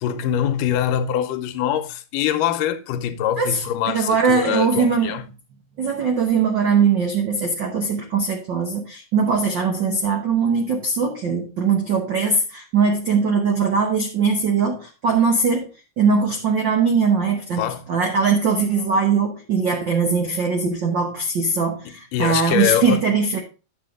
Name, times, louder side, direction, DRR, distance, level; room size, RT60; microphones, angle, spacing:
voice 1, 0.0-5.3 17.6-17.9 22.1-23.1, left 10 dB, 90° left, 2.3 m, -23 dB
voice 2, 3.4-5.2 5.8-15.7 16.0-23.4, right 5 dB, 90° right, 1.0 m, -21 dB
9.8 x 6.9 x 3.6 m
omnidirectional pair, 3.7 m